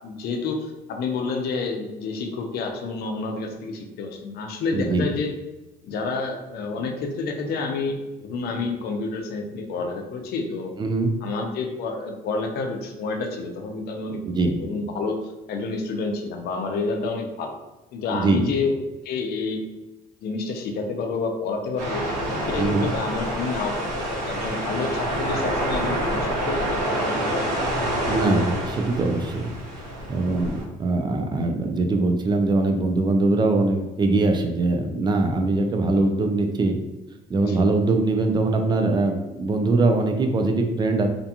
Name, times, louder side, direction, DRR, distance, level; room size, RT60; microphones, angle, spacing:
voice 1, 0.0-5.3 5.8-10.7 11.2-14.2 14.6-17.5 17.9-18.7 19.0-19.6 20.2-22.0 22.4-27.5 37.4-37.6, left 4 dB, 70° left, 3 dB, 0.5 m, -29 dB
voice 2, 4.7-5.1 10.8-11.1 14.2-14.6 18.1-18.5 22.6-22.9 28.1-29.5 30.1-36.7 37.3-41.1, right 2 dB, 25° right, 5 dB, 0.4 m, -22 dB
sound 1, 21.8-30.6, right 1 dB, 90° right, 1.0 m, -27 dB
2.5 x 2.2 x 2.8 m, 1.0 s
cardioid pair, 110°, 17 cm